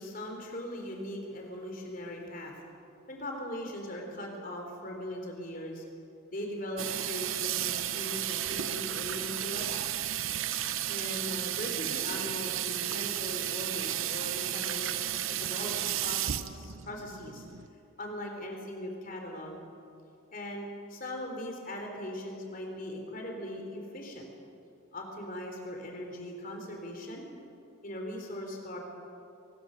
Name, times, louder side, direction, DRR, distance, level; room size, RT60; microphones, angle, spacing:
voice 1, 0.0-2.5 3.1-5.8 6.3-9.9 10.9-14.9 15.4-17.5 18.0-19.6 20.3-24.3 24.9-27.3 27.8-28.8, left 1 dB, 40° left, 1 dB, 3.6 m, -39 dB
Water tap faucet / Sink (filling or washing), 6.8-17.7, right 12 dB, 75° right, 0.8 m, -33 dB
24.0 x 20.5 x 6.4 m, 2.7 s
head